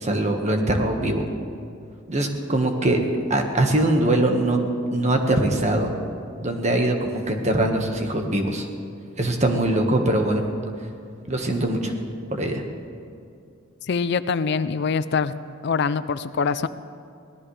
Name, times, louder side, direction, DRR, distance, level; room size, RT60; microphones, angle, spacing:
voice 1, 0.0-1.2 2.1-3.0 3.3-4.7 4.9-5.9 6.4-8.7 9.2-10.5 11.3-11.9 12.3-12.6, right 1 dB, 35° right, 3 dB, 1.5 m, -22 dB
voice 2, 13.9-15.3 15.6-16.7, left 5 dB, 55° left, 14 dB, 0.4 m, -24 dB
24.0 x 18.0 x 3.3 m, 2.4 s
head